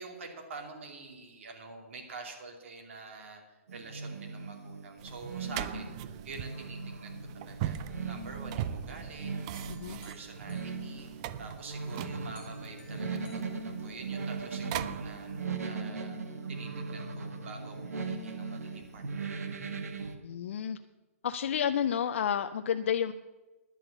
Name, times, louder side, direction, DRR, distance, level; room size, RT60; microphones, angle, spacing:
voice 1, 0.0-7.8 8.1-9.4 9.8-11.1 11.4-16.2 16.5-19.5, right 4 dB, 55° right, 2 dB, 2.8 m, -47 dB
sound 1, 3.7-20.2, right 4 dB, 85° right, 1.8 m, -39 dB
sound 2, 5.0-15.5, right 11 dB, 25° right, 0.4 m, -41 dB
sound 3, 9.5-11.5 11.9-14.4, left 3 dB, 10° left, 2.1 m, -60 dB
voice 2, 9.7-10.0 20.2-20.8 21.2-23.1, left 8 dB, 55° left, 9 dB, 0.5 m, -30 dB
11.0 x 7.7 x 8.2 m, 1.1 s
hypercardioid pair, 165°, 8 cm